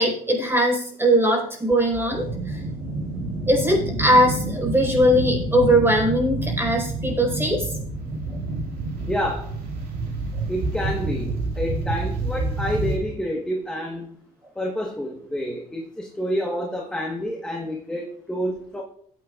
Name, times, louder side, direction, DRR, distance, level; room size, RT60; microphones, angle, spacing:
voice 1, 0.0-2.6 3.5-7.7 8.3-8.4, equal, 15° right, 0 dB, 4.9 m, -20 dB
sound 1, 2.1-13.0, right 2 dB, 70° right, 3.4 m, -28 dB
voice 2, 9.1-9.5 10.5-14.1 14.6-18.8, equal, 5° left, 0 dB, 1.3 m, -28 dB
18.5 x 9.0 x 2.4 m, 0.62 s
cardioid pair, 110°, 17 cm